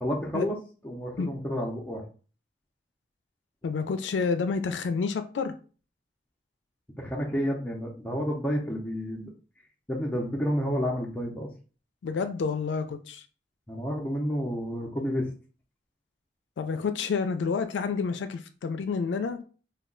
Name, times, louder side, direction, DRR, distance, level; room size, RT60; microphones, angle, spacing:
voice 1, 0.0-0.6 0.8-2.0 7.0-9.3 9.9-11.5 13.7-15.3, equal, 10° left, -2 dB, 0.4 m, -30 dB
voice 2, 3.6-5.5 12.0-13.2 16.6-19.4, left 5 dB, 85° left, 9 dB, 0.3 m, -29 dB
2.2 x 2.1 x 3.6 m, 0.37 s
head